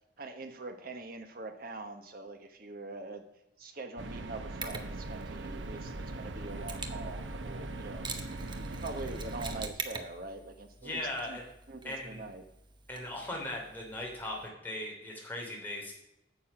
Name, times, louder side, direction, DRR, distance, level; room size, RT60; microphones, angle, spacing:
voice 1, 0.2-3.3 3.6-8.1 8.8-11.0 11.3-11.4 11.7-12.4, right 2 dB, 50° right, 7 dB, 1.2 m, -43 dB
sound 1, 4.0-9.7, right 2 dB, 80° right, 0.9 m, -40 dB
Mechanisms, 4.6-14.5, right 4 dB, 25° right, 0.9 m, -46 dB
voice 2, 10.8-11.4 11.8-12.2 12.9-15.9, left 1 dB, 10° left, -2 dB, 3.1 m, -38 dB
9.2 x 7.2 x 6.0 m, 0.87 s
head